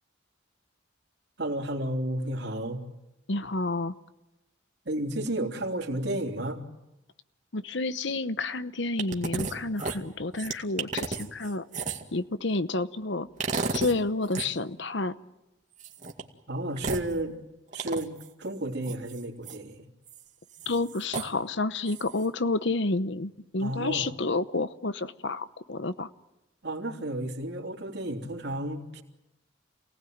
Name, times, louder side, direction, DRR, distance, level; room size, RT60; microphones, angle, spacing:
voice 1, 1.4-2.8 4.9-6.6 16.5-17.4 17.7-18.1 18.4-19.9 23.6-24.1 26.6-29.0, right 1 dB, 55° right, 2 dB, 3.4 m, -32 dB
voice 2, 3.3-3.9 7.5-11.6 12.1-13.3 13.7-15.1 20.7-26.1, left 2 dB, 60° left, 14 dB, 0.9 m, -30 dB
sound 1, 9.0-9.5 9.8-12.2 13.4-14.0 14.2-14.5 15.8-16.2 16.8-17.1 17.7-18.3 18.8-19.6 20.1-20.2 20.5-21.3 21.9-22.2, right 3 dB, 40° right, 2.2 m, -33 dB
28.0 x 18.5 x 9.4 m, 0.97 s
head